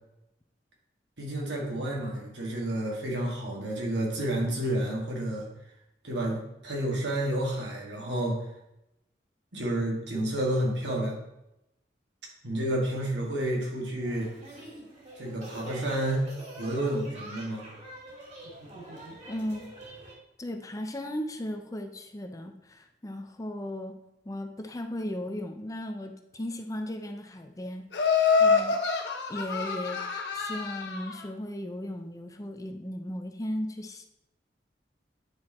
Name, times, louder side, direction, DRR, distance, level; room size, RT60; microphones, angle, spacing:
voice 1, 1.2-5.5 6.0-8.4 9.5-11.2 12.4-14.3 15.2-17.6, right 1 dB, 85° right, -2 dB, 2.3 m, -30 dB
sound 1, 14.0-20.1, right 1 dB, 40° right, 2.3 m, -46 dB
voice 2, 19.3-19.7 20.4-24.0 24.3-28.1 28.4-28.8 29.3-30.0 30.3-34.1, left 1 dB, 20° left, 5 dB, 0.6 m, -36 dB
Laughter, 27.9-31.1, left 5 dB, 70° left, 1.2 m, -26 dB
9.5 x 4.5 x 4.3 m, 0.87 s
head